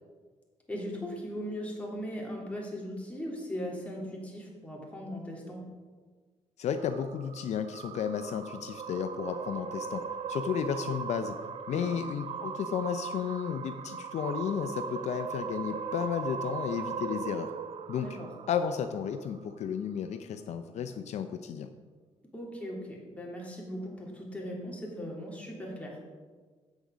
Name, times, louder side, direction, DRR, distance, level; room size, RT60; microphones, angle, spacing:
voice 1, 0.7-5.6 11.7-11.9 18.0-18.3 22.3-26.0, equal, 10° left, -3 dB, 3.1 m, -38 dB
voice 2, 6.6-11.4 11.7-17.5 17.9-18.2 18.5-21.7, left 7 dB, 70° left, 8 dB, 0.6 m, -33 dB
sound 1, 6.7-19.2, right 6 dB, 60° right, 0.5 m, -39 dB
8.3 x 6.4 x 6.2 m, 1.5 s
cardioid pair, 80°, 12 cm